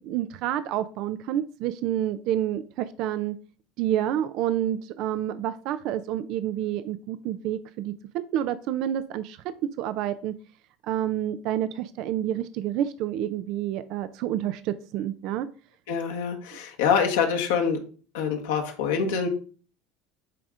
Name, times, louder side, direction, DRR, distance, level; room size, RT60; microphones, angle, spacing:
voice 1, 0.0-3.4 3.8-10.3 10.9-15.5, right 11 dB, 60° right, 13 dB, 0.5 m, -29 dB
voice 2, 15.9-17.8 18.1-19.3, left 6 dB, 80° left, 2 dB, 1.3 m, -25 dB
9.1 x 3.6 x 3.8 m, 0.40 s
hypercardioid pair, 85°, 0 cm